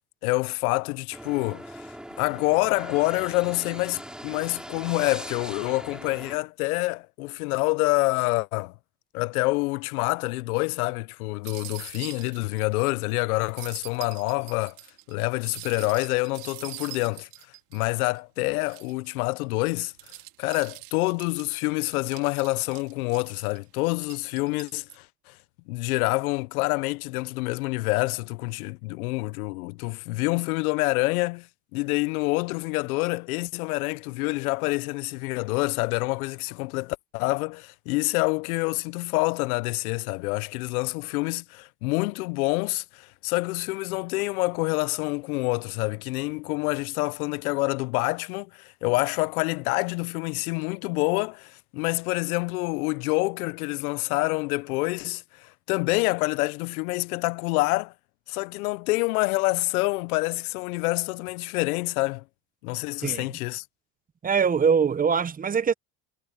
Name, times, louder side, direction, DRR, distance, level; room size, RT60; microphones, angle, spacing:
voice 1, 0.2-8.7 9.1-14.8 15.1-17.3 17.7-19.9 20.4-25.4 25.7-31.5 31.7-57.9 58.3-62.2 62.6-63.6, left 24 dB, 75° left, 0.7 m, -27 dB
sound 1, 1.1-6.4, equal, ahead, 6.6 m, -40 dB
sound 2, 11.4-12.8 13.1-13.2 13.4-18.2 18.6-19.1 19.7-23.6 24.0-25.0, right 20 dB, 80° right, 2.9 m, -44 dB
voice 2, 64.2-65.7, right 6 dB, 20° right, 0.9 m, -22 dB
supercardioid pair, 115°, 44 cm